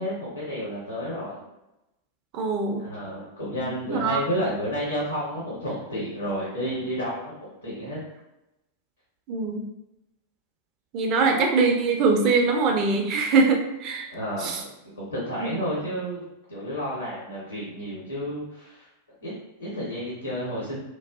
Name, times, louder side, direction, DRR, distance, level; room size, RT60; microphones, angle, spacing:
voice 1, 0.0-1.4 2.8-8.0 14.1-14.7 15.0-16.2 16.5-18.9 19.2-20.8, equal, 80° left, -7 dB, 0.9 m, -31 dB
voice 2, 2.3-2.8 3.9-4.2 9.3-9.6 10.9-14.1 14.4-14.6 15.4-15.5, right 4 dB, 40° right, 3 dB, 0.4 m, -22 dB
2.4 x 2.3 x 2.3 m, 0.92 s
figure-of-eight pair, 90°, 0 cm